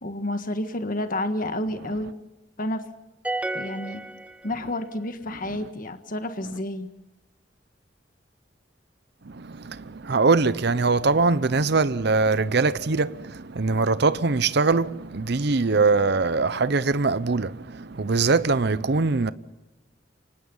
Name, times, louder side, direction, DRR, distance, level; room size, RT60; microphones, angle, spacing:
voice 1, 0.0-2.1 2.6-2.8 3.5-4.0 4.4-6.9, left 1 dB, 50° left, 1.7 m, -30 dB
sound 1, 3.2-5.0, right 2 dB, 5° right, 1.1 m, -32 dB
voice 2, 9.2-19.3, right 3 dB, 65° right, 0.8 m, -22 dB
29.0 x 25.5 x 5.5 m
head